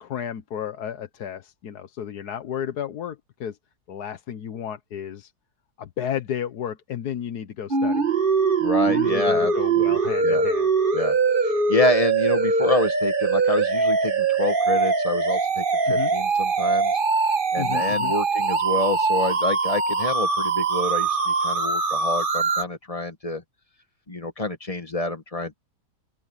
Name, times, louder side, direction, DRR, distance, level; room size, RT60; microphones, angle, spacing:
voice 1, 0.0-3.6 3.9-5.3 5.8-8.0 8.8-10.7 15.9-16.1 17.6-18.1, left 9 dB, 70° left, 1.5 m, -32 dB
sound 1, 7.7-22.6, right 4 dB, 35° right, 1.4 m, -22 dB
voice 2, 8.6-10.4 10.9-11.2 11.4-17.0 17.5-23.4 24.1-25.5, left 2 dB, 25° left, 1.2 m, -27 dB
open air
omnidirectional pair, 1.8 m